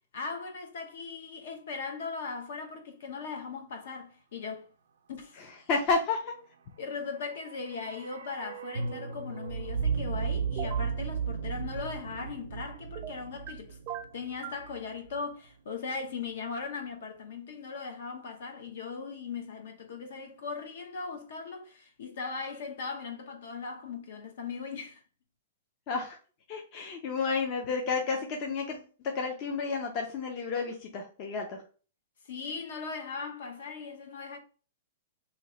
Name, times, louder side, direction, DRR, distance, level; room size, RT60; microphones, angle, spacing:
voice 1, 0.1-4.7 5.1-5.4 6.8-13.8 14.1-25.0 32.2-34.4, left 5 dB, 60° left, 0.9 m, -39 dB
voice 2, 5.7-6.3 25.9-26.2 26.5-31.6, left 4 dB, 30° left, 0.5 m, -31 dB
sound 1, 7.1-15.2 15.4-15.5, right 6 dB, 90° right, 0.5 m, -35 dB
sound 2, 10.6-10.9 13.0-13.5 13.9-14.7, right 10 dB, 25° right, 0.3 m, -39 dB
2.9 x 2.8 x 4.2 m
hypercardioid pair, 170°, 0 cm